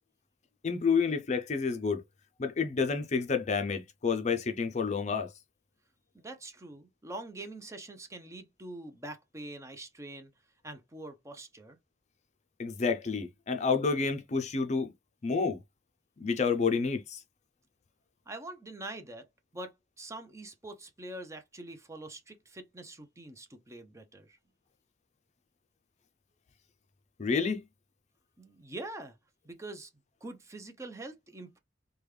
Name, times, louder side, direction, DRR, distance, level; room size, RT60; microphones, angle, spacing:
voice 1, 0.6-2.0 2.4-5.3 12.6-14.9 15.2-15.6 16.2-17.2 27.2-27.6, left 5 dB, 40° left, 0.5 m, -29 dB
voice 2, 6.1-10.3 10.6-11.8 18.3-19.3 19.5-24.4 28.4-29.2 29.4-29.9 30.2-31.6, right 2 dB, 15° right, 0.6 m, -44 dB
3.4 x 2.2 x 3.1 m
head